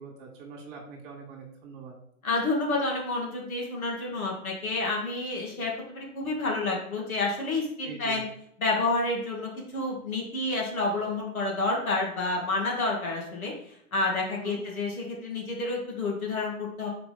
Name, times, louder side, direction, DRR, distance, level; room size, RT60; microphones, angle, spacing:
voice 1, 0.0-1.9 7.8-8.2 14.3-14.6, right 5 dB, 35° right, -2 dB, 1.8 m, -43 dB
voice 2, 2.2-8.2 8.6-13.5 13.9-16.9, left 2 dB, 70° left, -2 dB, 2.6 m, -29 dB
5.9 x 4.7 x 4.0 m, 0.70 s
figure-of-eight pair, 110°, 43 cm